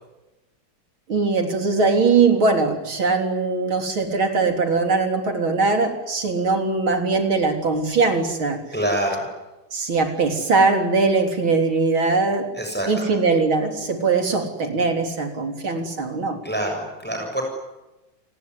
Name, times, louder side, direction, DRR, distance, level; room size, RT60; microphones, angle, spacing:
voice 1, 1.1-8.6 9.7-12.5 12.9-16.4, right 4 dB, 80° right, 5 dB, 4.5 m, -21 dB
voice 2, 8.7-9.3 12.6-13.2 16.4-17.4, right 1 dB, 5° left, 2 dB, 7.0 m, -26 dB
29.0 x 20.5 x 9.8 m, 1.0 s
omnidirectional pair, 2.2 m